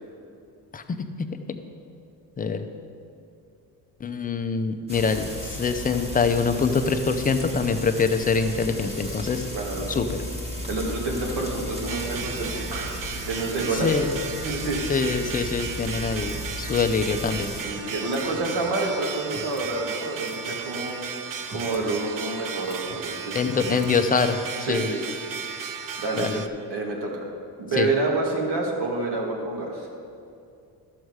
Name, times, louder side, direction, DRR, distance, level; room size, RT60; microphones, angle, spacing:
voice 1, 0.7-1.3 2.4-2.6 4.0-9.5 9.9-10.2 13.7-14.2 14.9-17.5 23.3-24.4 24.7-24.9 26.2-26.3 27.8-27.9, left 5 dB, 20° left, 7 dB, 0.5 m, -24 dB
Frying (food), 4.9-17.6, left 1 dB, 15° right, 1.5 m, -35 dB
voice 2, 9.5-9.9 10.7-14.1 14.4-14.8 17.6-21.0 21.5-23.8 24.6-25.0 26.0-26.4 26.7-27.2 27.6-29.9, right 2 dB, 70° right, -1 dB, 2.0 m, -28 dB
sound 1, 11.9-26.5, right 6 dB, 50° right, 0.6 m, -35 dB
sound 2, 18.0-18.7 19.3-19.7 20.2-20.6 21.3-21.9 22.2-22.3 22.6-23.1 23.5-24.0, equal, 35° right, 1.5 m, -43 dB
13.0 x 6.4 x 4.7 m, 2.5 s
cardioid pair, 125°, 42 cm